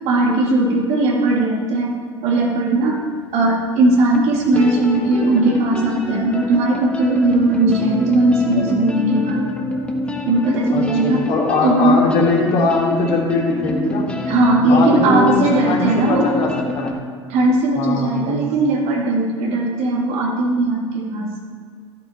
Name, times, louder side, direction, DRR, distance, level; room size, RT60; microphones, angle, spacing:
voice 1, 0.1-2.0 2.2-3.0 3.3-9.5 10.2-11.2 11.6-12.0 14.3-16.3 17.3-21.3, right 2 dB, 45° right, -1 dB, 2.4 m, -18 dB
sound 1, 3.6-3.7 4.1-16.9, left 2 dB, 5° left, 1.5 m, -26 dB
voice 2, 10.7-14.1 14.7-17.0 17.8-18.4, left 3 dB, 45° left, -1 dB, 3.2 m, -21 dB
14.0 x 8.2 x 4.4 m, 2.2 s
figure-of-eight pair, 75°, 15 cm